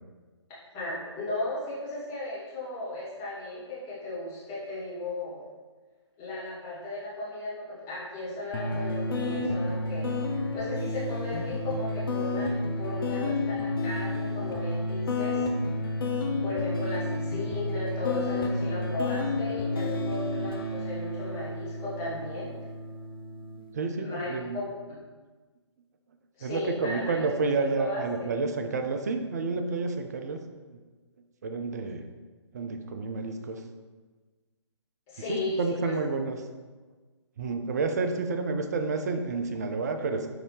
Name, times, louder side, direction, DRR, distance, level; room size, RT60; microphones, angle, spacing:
voice 1, 0.7-5.5 6.2-10.2 10.5-15.5 16.4-22.6 23.9-25.0 26.4-28.3 35.1-35.9, left 2 dB, 20° left, -8 dB, 1.4 m, -35 dB
sound 1, 8.5-23.6, left 2 dB, 50° left, 0.5 m, -31 dB
voice 2, 23.7-24.6 26.4-30.4 31.4-32.1 32.5-33.6 35.3-36.4 37.4-40.3, right 4 dB, 35° right, 6 dB, 0.4 m, -30 dB
5.8 x 2.6 x 3.2 m, 1.3 s
figure-of-eight pair, 135°, 15 cm